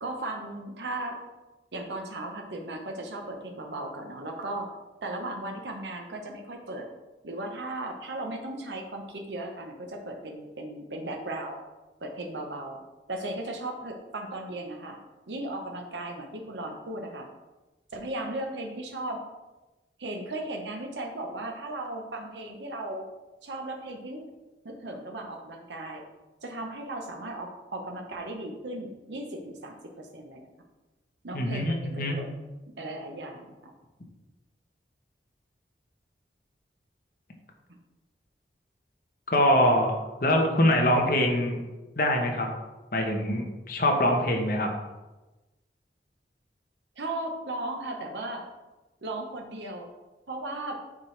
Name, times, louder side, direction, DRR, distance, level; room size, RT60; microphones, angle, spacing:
voice 1, 0.0-1.2 1.7-4.7 5.0-6.9 7.2-11.6 12.0-12.8 13.1-15.0 15.3-17.3 17.9-19.2 20.0-23.1 23.4-24.2 24.6-26.0 26.4-30.5 31.2-32.3 32.8-33.7 47.0-48.5 49.0-49.9 50.3-50.8, right 1 dB, 90° right, 2 dB, 0.9 m, -36 dB
voice 2, 31.3-32.2 39.3-39.9 40.2-41.6 42.0-42.5 42.9-44.7, left 1 dB, 50° left, 2 dB, 1.0 m, -24 dB
7.3 x 4.5 x 3.3 m, 1.1 s
head